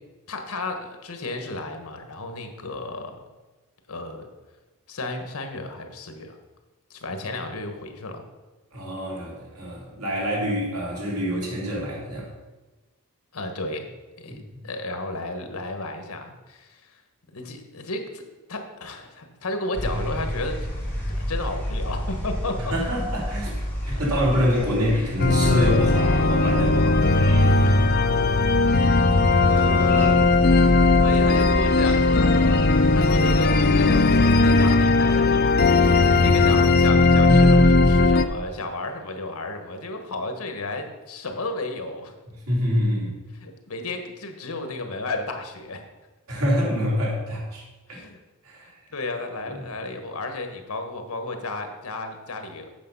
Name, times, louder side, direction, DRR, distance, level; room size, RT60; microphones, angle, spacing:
voice 1, 0.3-3.2 3.9-4.3 4.9-6.4 6.9-8.2 13.3-13.9 14.2-17.0 17.3-18.2 18.5-20.7 21.3-22.8 23.9-24.0 27.6-28.1 28.4-28.6 29.4-30.6 31.0-32.6 32.9-42.1 43.3-45.8 47.9-48.2 48.9-52.7, left 2 dB, 80° left, 6 dB, 1.3 m, -33 dB
voice 2, 8.7-12.3 14.3-14.4 22.7-23.6 23.9-27.6 42.5-43.1 46.3-48.0 48.4-48.7 49.5-49.6, equal, 85° right, -4 dB, 3.3 m, -26 dB
sound 1, 19.7-34.3, equal, 10° left, 2.6 m, -32 dB
sound 2, 25.2-38.2, left 3 dB, 45° left, 0.5 m, -18 dB
8.5 x 6.2 x 5.6 m, 1.2 s
head